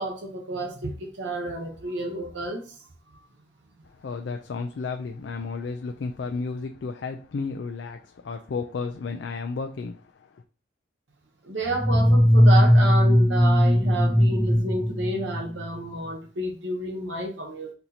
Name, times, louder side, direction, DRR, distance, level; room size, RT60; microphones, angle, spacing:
voice 1, 0.0-2.8 11.4-17.7, right 1 dB, 85° right, 0.9 m, -30 dB
voice 2, 4.0-10.3, left 4 dB, 75° left, 0.4 m, -33 dB
sound 1, 11.7-15.8, equal, 5° left, 0.4 m, -19 dB
4.5 x 2.7 x 4.1 m
head